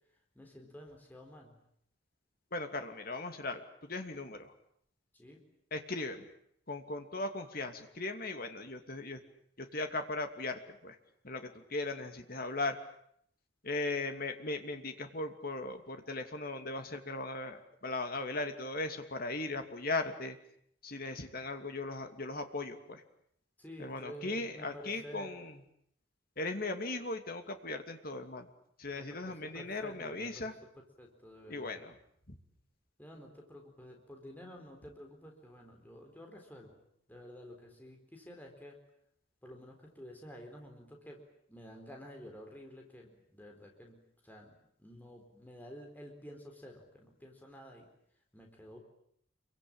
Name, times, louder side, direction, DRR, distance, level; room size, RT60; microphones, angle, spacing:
voice 1, 0.3-1.6 5.1-5.4 23.6-25.3 28.9-30.5 31.0-31.8 33.0-36.8 37.1-38.8 39.4-41.2 41.5-47.9 48.3-48.8, equal, 10° left, 1 dB, 4.3 m, -51 dB
voice 2, 2.5-4.5 5.7-6.3 6.7-9.2 9.6-11.0 11.2-12.8 13.6-20.4 20.8-23.0 23.8-25.6 26.4-28.5 28.8-30.5 31.5-31.9 32.3-32.4, left 2 dB, 50° left, 6 dB, 2.7 m, -38 dB
27.5 x 24.0 x 8.9 m, 0.69 s
head